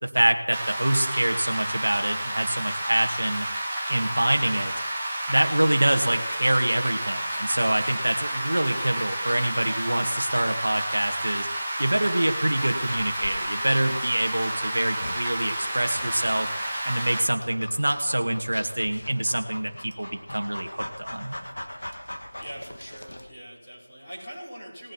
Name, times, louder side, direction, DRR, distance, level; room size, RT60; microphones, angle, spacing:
voice 1, 0.0-3.5 3.9-4.7 5.3-11.5 11.8-16.5 16.8-21.3, right 1 dB, 65° right, 4 dB, 1.7 m, -25 dB
Rain, 0.5-17.2, right 1 dB, 5° right, 1.5 m, -30 dB
Dog, 12.6-23.3, left 1 dB, 65° left, 1.7 m, -41 dB
voice 2, 22.4-24.9, equal, 10° left, -12 dB, 4.6 m, -42 dB
19.5 x 8.3 x 4.3 m, 1.0 s
figure-of-eight pair, 175°, 0 cm